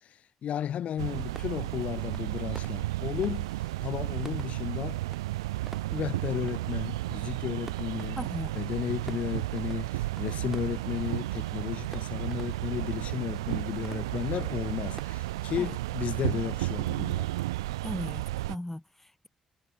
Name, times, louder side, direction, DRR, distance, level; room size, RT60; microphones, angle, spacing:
voice 1, 0.0-5.0 5.9-8.2 8.5-17.3, left 10 dB, 55° left, 0.9 m, -34 dB
sound 1, 1.0-18.6, right 18 dB, 75° right, 0.5 m, -33 dB
sound 2, 1.1-15.1, right 2 dB, 15° right, 5.9 m, -52 dB
voice 2, 8.2-8.5 15.6-15.7 17.8-19.3, left 1 dB, 10° left, 0.6 m, -37 dB
figure-of-eight pair, 40°, 3 cm